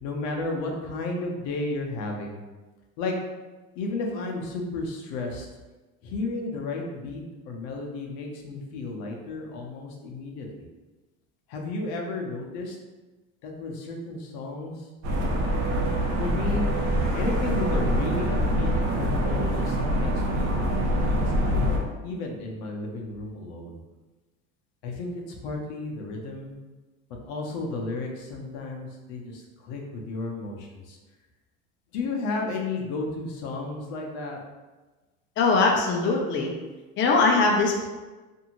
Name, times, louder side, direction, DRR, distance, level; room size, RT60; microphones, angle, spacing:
voice 1, 0.0-2.4 3.0-3.2 3.8-5.5 6.0-10.6 11.5-12.8 13.4-14.7 16.2-16.7 17.1-18.7 19.0-21.7 22.0-23.8 24.8-25.1 25.4-26.5 27.3-29.4 29.7-31.0 31.9-34.4, left 3 dB, 75° left, 1 dB, 0.7 m, -33 dB
sound 1, 15.0-21.8, equal, 55° right, 0.7 m, -25 dB
voice 2, 35.4-36.5 37.0-37.9, left 3 dB, 35° left, 0 dB, 0.5 m, -21 dB
2.6 x 2.6 x 2.9 m, 1.2 s
supercardioid pair, 100°, 33 cm